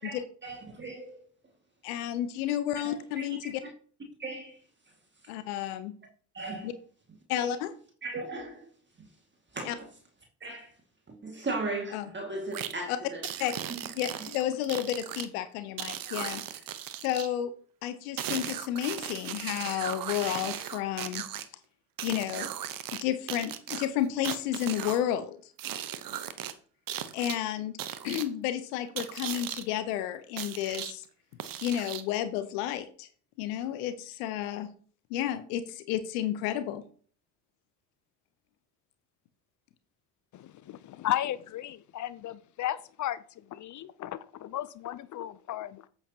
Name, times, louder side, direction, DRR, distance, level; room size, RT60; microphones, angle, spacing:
voice 1, 0.0-1.2 2.8-3.4 4.2-4.6 6.3-6.7 7.3-7.5 8.0-8.7 9.0-9.1 9.5-9.9 10.4-10.7 11.1-13.3 13.7-13.8 16.0-16.1, right 2 dB, 25° right, 2.1 m, -37 dB
voice 2, 1.8-3.6 5.3-5.9 6.6-6.7 7.3-7.7 9.7-9.8 11.9-12.1 12.9-13.0 13.4-13.5 14.0-16.4 17.0-17.5 17.8-21.2 22.0-22.5 23.0-25.4 27.1-27.7 28.0-31.0 31.6-33.1 33.4-34.7 35.1-36.8, left 11 dB, 70° left, 0.9 m, -31 dB
sound 1, 12.5-12.7 13.2-15.3 15.8-17.3 18.2-21.4 22.0-23.0 23.3-25.0 25.6-26.5 26.9-27.4 27.8-28.3 29.0-29.6 30.4-30.9 31.4-32.2, right 11 dB, 45° right, 1.1 m, -37 dB
voice 3, 40.3-45.9, left 12 dB, 40° left, 0.6 m, -35 dB
8.7 x 8.3 x 2.9 m
hypercardioid pair, 60°, 47 cm